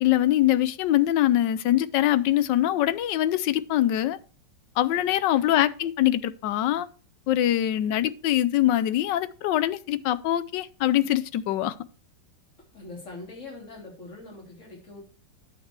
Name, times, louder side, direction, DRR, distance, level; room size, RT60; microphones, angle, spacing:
voice 1, 0.0-4.2 4.8-6.9 7.3-11.7, left 13 dB, 85° left, 1.3 m, -23 dB
voice 2, 5.3-5.6 12.7-15.0, left 3 dB, 40° left, 3.6 m, -43 dB
10.5 x 6.0 x 4.6 m
omnidirectional pair, 1.9 m